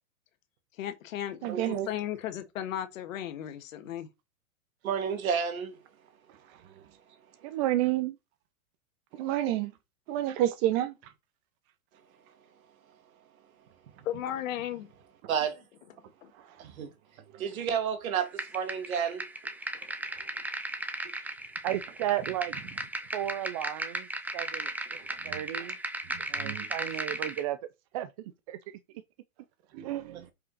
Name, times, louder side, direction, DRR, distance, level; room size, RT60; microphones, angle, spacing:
voice 1, 0.8-4.1 14.0-14.9 16.2-16.3, left 11 dB, 65° left, 1.7 m, -35 dB
voice 2, 1.4-1.9 9.2-9.7 10.1-10.9 25.2-25.4 26.1-26.7 29.7-29.9, right 12 dB, 45° right, 1.7 m, -29 dB
voice 3, 4.8-5.8 15.3-15.6 16.6-16.9 17.4-19.3, right 7 dB, 70° right, 2.4 m, -30 dB
voice 4, 7.4-8.2 21.6-22.6 23.1-24.1 24.3-24.7 25.2-25.8 26.3-27.6 27.9-28.1 28.5-28.6 29.8-30.2, right 14 dB, 30° right, 0.3 m, -32 dB
sound 1, 18.4-27.4, right 2 dB, 5° right, 0.8 m, -36 dB
7.6 x 5.7 x 4.0 m
hypercardioid pair, 125°, 43 cm